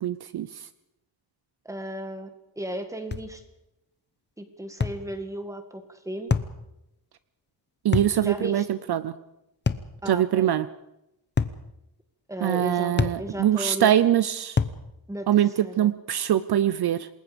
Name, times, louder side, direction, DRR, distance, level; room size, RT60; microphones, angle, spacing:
voice 1, 0.0-0.7 7.8-9.1 10.1-10.7 12.4-14.6 15.3-17.1, right 11 dB, 60° right, 15 dB, 0.7 m, -23 dB
voice 2, 1.7-2.3 2.6-3.4 4.4-6.3 8.2-8.7 10.0-10.5 12.3-13.9 15.1-15.9, right 1 dB, 5° right, 7 dB, 1.9 m, -35 dB
sound 1, 3.1-3.3 4.8-5.0 6.3-6.6 7.9-8.2 9.7-9.9 11.4-11.6 13.0-13.2 14.6-14.8, left 5 dB, 25° left, 0.8 m, -25 dB
27.5 x 20.5 x 5.2 m, 0.89 s
wide cardioid pair, 180°, 44 cm